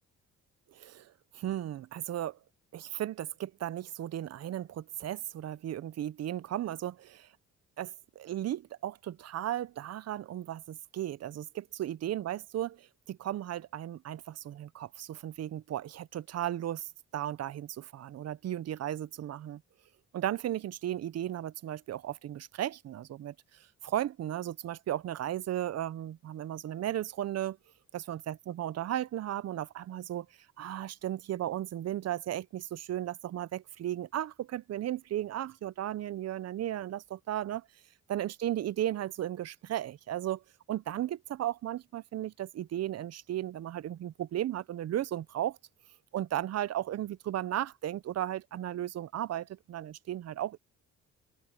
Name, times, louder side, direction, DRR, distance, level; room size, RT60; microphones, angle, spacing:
voice 1, 1.3-2.4 2.7-7.3 7.8-12.8 13.1-16.8 17.1-19.6 20.1-23.3 23.8-27.6 27.9-30.3 30.6-37.6 38.1-40.4 40.7-45.6 46.1-50.6, right 12 dB, 55° right, 0.7 m, -35 dB
cardioid pair, 90°, 30 cm